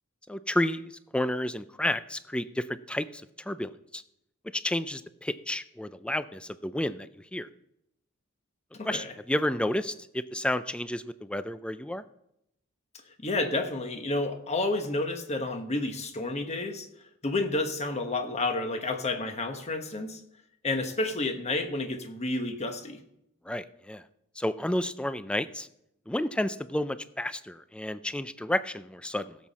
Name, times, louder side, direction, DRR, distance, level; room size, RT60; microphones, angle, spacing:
voice 1, 0.3-4.0 4.5-7.5 8.8-12.0 23.5-24.0 24.4-25.7 26.1-29.4, left 1 dB, 5° left, 14 dB, 0.4 m, -31 dB
voice 2, 8.7-9.1 13.2-16.9 17.2-20.2 20.6-23.0, left 2 dB, 30° left, 6 dB, 1.2 m, -30 dB
16.5 x 7.5 x 4.1 m, 0.80 s
head